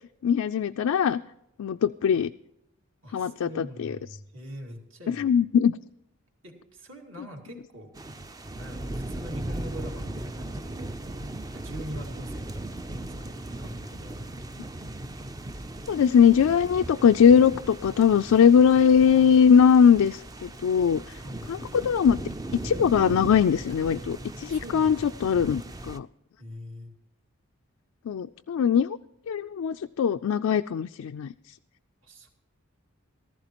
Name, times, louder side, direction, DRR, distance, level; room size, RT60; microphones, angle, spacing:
voice 1, 0.2-1.2 1.6-2.3 3.1-4.0 5.1-5.7 15.9-21.0 21.5-22.2 22.6-25.6 25.9-26.1 28.1-29.0 29.3-31.3, left 7 dB, 80° left, 8 dB, 0.3 m, -21 dB
voice 2, 3.0-5.4 6.4-8.0 8.5-11.0 11.5-14.5 19.0-19.4 21.2-21.7 24.5-25.0 26.4-27.0 32.0-32.3, equal, 60° right, 1 dB, 2.3 m, -43 dB
sound 1, 7.9-26.0, right 1 dB, 15° right, 0.4 m, -38 dB
15.5 x 14.0 x 3.0 m, 0.83 s
head